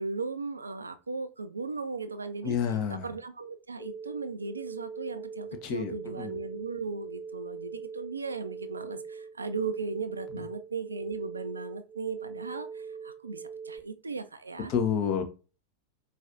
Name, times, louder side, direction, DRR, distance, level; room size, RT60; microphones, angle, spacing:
voice 1, 0.0-2.6 2.9-14.7, right 4 dB, 75° right, 0.3 m, -37 dB
voice 2, 2.4-3.1 5.6-6.4 14.7-15.2, left 7 dB, 40° left, 0.5 m, -29 dB
sound 1, 3.8-13.8, right 5 dB, 10° right, 0.7 m, -42 dB
4.2 x 2.3 x 2.4 m
figure-of-eight pair, 90°, 0 cm